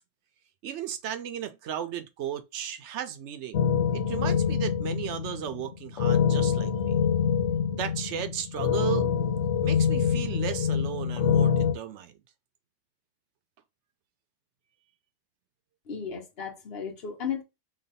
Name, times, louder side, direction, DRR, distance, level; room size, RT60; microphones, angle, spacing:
voice 1, 0.6-3.7 3.9-7.0 7.7-9.1 9.6-12.1, right 10 dB, 70° right, 0.8 m, -35 dB
sound 1, 3.5-11.7, left 7 dB, 85° left, 1.1 m, -25 dB
voice 2, 15.9-17.4, left 7 dB, 55° left, 1.2 m, -34 dB
3.2 x 2.3 x 4.0 m
omnidirectional pair, 1.3 m